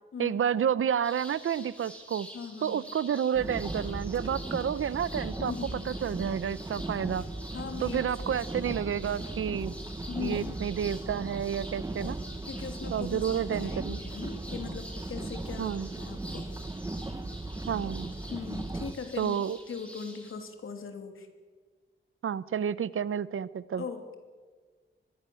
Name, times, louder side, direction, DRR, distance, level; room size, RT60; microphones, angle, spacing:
voice 1, 0.2-2.3 2.6-7.2 7.8-9.7 10.2-12.2 12.9-14.0 15.6-15.9 17.7-18.1 19.2-19.6 22.2-23.8, right 8 dB, 80° right, 18 dB, 0.8 m, -30 dB
sound 1, 1.0-20.3, equal, 5° left, 5.1 m, -48 dB
voice 2, 2.3-2.9 5.4-5.9 7.5-8.8 10.1-10.6 12.4-16.5 18.3-19.4 19.7-21.3 23.8-24.2, left 5 dB, 80° left, 6 dB, 3.0 m, -40 dB
sound 2, 3.3-18.9, right 2 dB, 15° right, 1.3 m, -37 dB
24.0 x 21.5 x 7.1 m, 1.5 s
wide cardioid pair, 160°, 21 cm